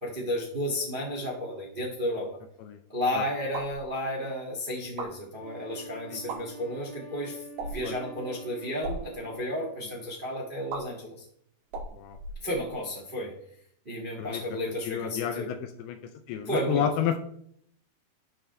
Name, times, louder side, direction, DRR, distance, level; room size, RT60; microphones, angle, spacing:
voice 1, 0.0-2.3 2.9-11.2 12.4-13.3 13.8-15.5 16.4-16.9, left 1 dB, 25° right, -3 dB, 1.1 m, -32 dB
sound 1, 3.5-3.8 4.8-5.1 6.1-6.4 7.5-7.9 8.7-9.0 10.7-10.8 11.7-12.8, right 3 dB, 85° right, 4.3 m, -37 dB
Wind instrument woodwind instrument, 5.4-9.7, right 5 dB, 20° left, 2.8 m, -46 dB
voice 2, 14.9-16.0 16.3-17.2, left 9 dB, 80° left, 7 dB, 2.5 m, -30 dB
12.0 x 7.1 x 3.4 m, 0.66 s
omnidirectional pair, 4.8 m